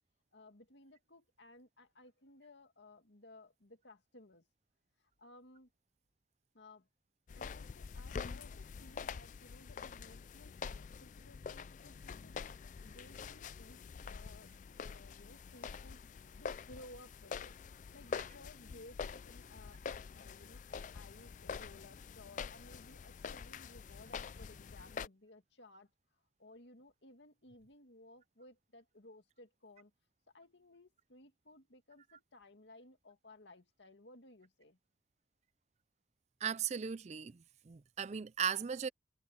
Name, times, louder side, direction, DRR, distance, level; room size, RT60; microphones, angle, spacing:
voice 1, 0.3-4.5 5.0-5.7 6.5-6.9 7.4-12.5 12.8-13.8 14.0-25.9 26.4-29.9 30.3-34.8, left 2 dB, 75° left, 2.3 m, -59 dB
sound 1, 7.3-25.1, left 5 dB, 40° left, 0.3 m, -46 dB
voice 2, 36.4-37.4 37.7-38.9, right 7 dB, 35° right, 0.4 m, -37 dB
head